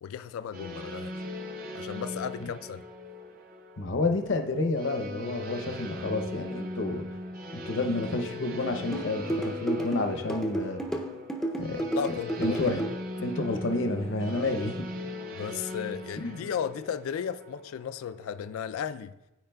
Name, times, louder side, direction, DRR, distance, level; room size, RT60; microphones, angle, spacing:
voice 1, 0.0-1.1 1.7-2.8 5.7-5.8 11.8-12.6 14.3-14.5 15.3-19.1, left 7 dB, 75° left, 0.3 m, -35 dB
sound 1, 0.5-18.6, left 1 dB, 45° right, 0.6 m, -40 dB
voice 2, 3.8-7.0 7.5-10.8 11.6-11.8 12.4-12.8 13.2-14.8 16.1-16.4, left 2 dB, 60° left, 0.7 m, -30 dB
sound 2, 8.9-12.9, right 2 dB, ahead, 0.5 m, -31 dB
12.0 x 4.7 x 2.2 m
head